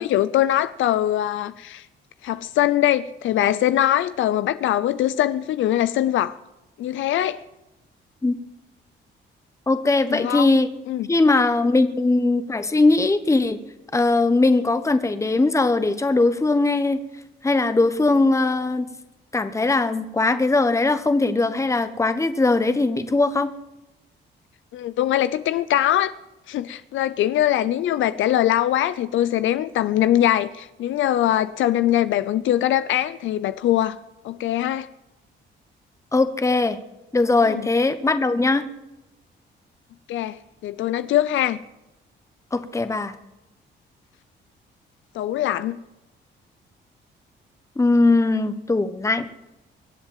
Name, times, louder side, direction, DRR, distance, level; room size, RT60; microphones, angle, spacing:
voice 1, 0.0-1.8 2.2-6.4 6.8-7.4 10.1-10.5 10.9-11.1 24.7-26.1 26.5-34.0 34.2-34.9 37.4-37.6 40.1-41.6 45.1-45.8, left 12 dB, 80° left, 14 dB, 0.6 m, -22 dB
voice 2, 9.7-10.7 11.1-13.6 13.9-17.0 17.4-18.9 19.3-23.5 36.1-36.8 37.1-38.6 42.5-43.1 47.8-49.3, left 3 dB, 15° left, 10 dB, 1.1 m, -20 dB
23.0 x 8.0 x 7.4 m, 0.97 s
cardioid pair, 90°, 20 cm